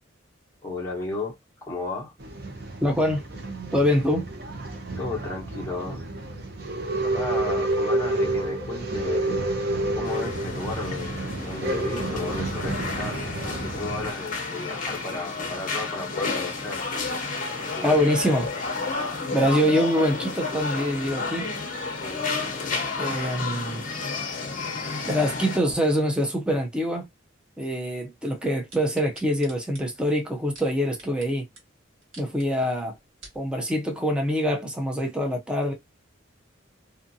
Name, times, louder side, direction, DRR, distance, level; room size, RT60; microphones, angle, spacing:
voice 1, 0.6-2.1 5.0-6.0 7.0-16.8 17.5-18.0 22.0-22.3, left 3 dB, 15° left, 0.9 m, -34 dB
Male speech man speaking / Chatter / Rattle, 2.2-14.1, right 2 dB, 55° right, 0.7 m, -29 dB
voice 2, 2.8-3.2 3.7-4.3 17.8-18.5 19.3-21.5 23.0-23.8 25.1-27.1 27.6-31.5 32.2-32.9 33.3-35.7, equal, 5° right, 0.5 m, -24 dB
sound 1, 10.0-25.6, left 4 dB, 40° left, 0.7 m, -31 dB
sound 2, 28.7-31.3 31.6-31.7 32.0-32.5 32.9-33.4 34.0-34.1, right 2 dB, 90° right, 1.6 m, -47 dB
2.6 x 2.5 x 2.6 m
head